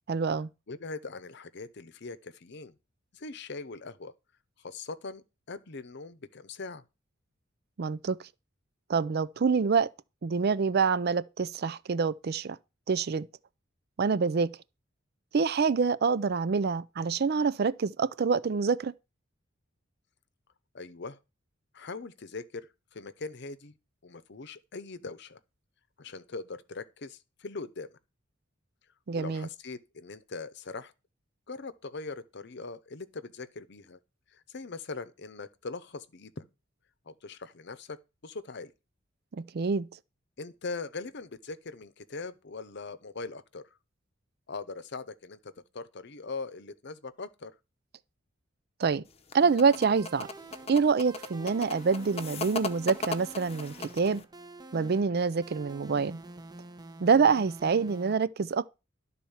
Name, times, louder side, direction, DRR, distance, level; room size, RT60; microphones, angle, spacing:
voice 1, 0.1-0.5 7.8-8.2 8.9-9.9 10.2-12.6 12.9-13.3 14.0-14.5 15.3-18.9 29.1-29.5 39.3-39.9 48.8-49.0 49.3-50.3 50.7-54.2 54.7-56.2 57.0-58.7, right 5 dB, 50° right, 0.4 m, -26 dB
voice 2, 0.7-2.7 3.1-4.1 4.6-6.8 20.7-21.2 21.7-23.7 24.0-25.4 26.0-27.9 29.1-30.9 31.5-34.0 34.3-36.4 37.1-38.0 38.2-38.7 40.4-43.6 44.5-47.5, left 3 dB, 60° left, 0.8 m, -41 dB
sound 1, 49.1-54.2, left 3 dB, 30° left, 0.8 m, -37 dB
sound 2, 49.4-58.1, right 2 dB, 20° right, 0.8 m, -48 dB
12.0 x 4.2 x 7.1 m
head